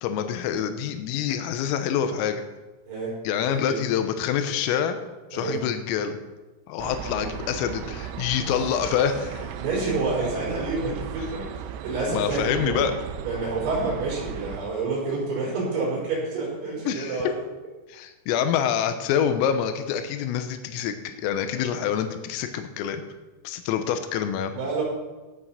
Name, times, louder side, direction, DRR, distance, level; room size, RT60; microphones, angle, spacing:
voice 1, 0.0-2.4 3.3-5.0 5.3-6.2 6.7-9.5 12.1-12.9 16.9-17.3 17.9-23.0 23.5-24.5, left 8 dB, 85° left, 8 dB, 3.6 m, -26 dB
voice 2, 2.9-3.2 3.5-3.8 5.3-5.6 9.6-11.5 11.8-12.8 13.2-17.3 24.5-24.8, right 3 dB, 65° right, -5 dB, 7.8 m, -28 dB
sound 1, 6.8-14.6, right 9 dB, 90° right, 3.6 m, -36 dB
17.5 x 7.6 x 5.8 m, 1.2 s
omnidirectional pair, 5.9 m